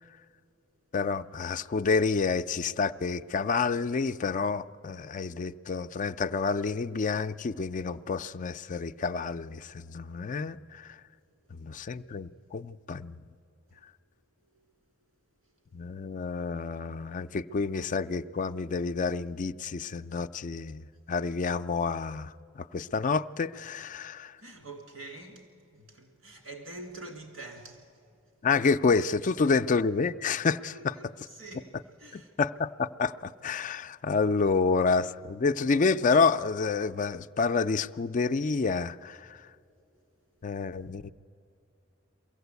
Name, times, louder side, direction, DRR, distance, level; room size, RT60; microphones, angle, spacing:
voice 1, 0.9-10.9 11.5-13.2 15.7-24.3 28.4-31.0 32.1-39.4 40.4-41.1, left 4 dB, 40° left, 0.4 m, -29 dB
voice 2, 24.4-27.9 30.7-32.3, right 2 dB, 85° right, 3.2 m, -46 dB
23.0 x 16.0 x 8.1 m
head